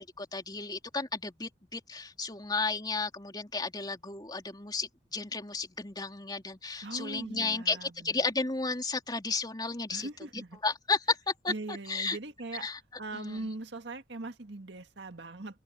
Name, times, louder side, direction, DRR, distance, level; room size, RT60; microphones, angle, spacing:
voice 1, 0.0-12.2 12.6-12.8 13.1-13.5, left 4 dB, 25° left, 3.6 m, -33 dB
voice 2, 6.8-8.1 9.9-10.6 11.5-12.7 13.0-15.6, right 2 dB, 85° right, 1.8 m, -40 dB
open air
head